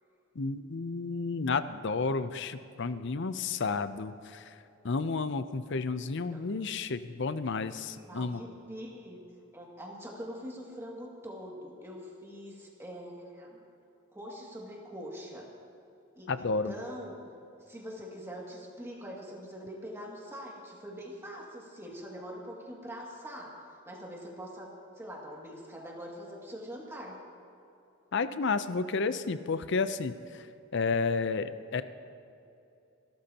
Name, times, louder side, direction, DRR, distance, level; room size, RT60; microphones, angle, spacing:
voice 1, 0.4-4.5 4.8-8.4 16.3-16.7 28.1-30.5 30.7-31.8, left 4 dB, 60° left, 13 dB, 0.6 m, -31 dB
voice 2, 7.9-9.2 9.5-13.6 14.1-15.5 16.2-17.2 17.6-23.6 23.9-27.2, equal, 10° right, -2 dB, 2.2 m, -43 dB
27.0 x 13.0 x 2.9 m, 2.8 s
head